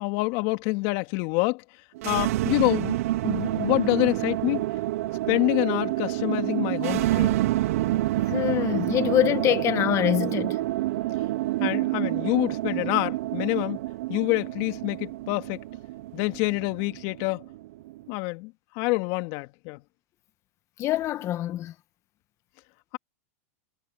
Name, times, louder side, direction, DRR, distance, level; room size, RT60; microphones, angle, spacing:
voice 1, 0.0-1.6 2.0-4.7 5.3-7.4 11.6-13.8 14.1-15.6 16.1-17.4 18.1-19.8, left 25 dB, 55° left, 2.3 m, -27 dB
sound 1, 2.0-18.0, right 16 dB, 70° right, 0.9 m, -28 dB
voice 2, 8.3-10.6 20.8-21.7, left 13 dB, 35° left, 1.7 m, -24 dB
hypercardioid pair, 120°, 8 cm